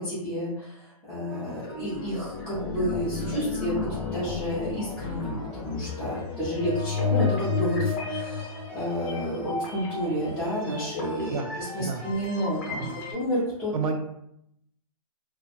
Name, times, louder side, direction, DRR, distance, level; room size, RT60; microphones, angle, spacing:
voice 1, 0.0-13.7, equal, 5° left, -13 dB, 0.3 m, -30 dB
sound 1, 1.3-13.1, left 4 dB, 30° left, 0.7 m, -32 dB
voice 2, 11.3-11.5 11.8-12.0 12.8-13.0 13.7-14.0, right 5 dB, 70° right, 6 dB, 0.4 m, -30 dB
2.2 x 2.1 x 2.7 m, 0.77 s
hypercardioid pair, 160°, 19 cm